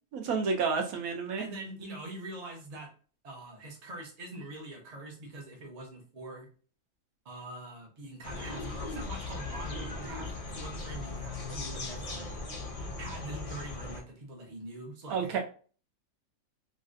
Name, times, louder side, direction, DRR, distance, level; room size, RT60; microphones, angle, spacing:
voice 1, 0.1-1.5 15.1-15.4, right 5 dB, 75° right, 3 dB, 1.1 m, -30 dB
voice 2, 1.4-2.9 3.2-6.5 7.2-12.3 13.0-15.4, right 2 dB, 35° right, 0 dB, 0.8 m, -44 dB
sound 1, 8.2-14.0, left 3 dB, 55° left, 0.3 m, -38 dB
3.2 x 2.5 x 2.5 m, 0.39 s
omnidirectional pair, 1.5 m